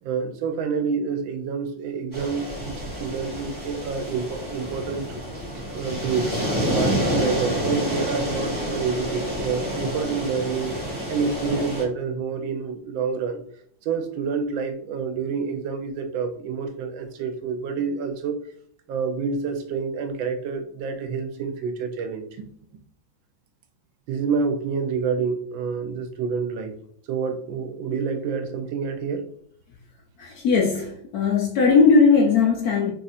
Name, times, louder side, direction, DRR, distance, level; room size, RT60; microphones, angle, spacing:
voice 1, 0.0-5.2 5.7-6.3 6.7-10.8 11.1-13.4 13.8-18.3 18.9-22.5 24.1-26.8 27.1-29.2, right 5 dB, 90° right, 1.4 m, -28 dB
sound 1, 2.1-11.8, equal, 10° right, 1.3 m, -28 dB
voice 2, 30.2-32.9, left 5 dB, 70° left, 1.0 m, -18 dB
4.6 x 2.4 x 4.1 m
omnidirectional pair, 2.1 m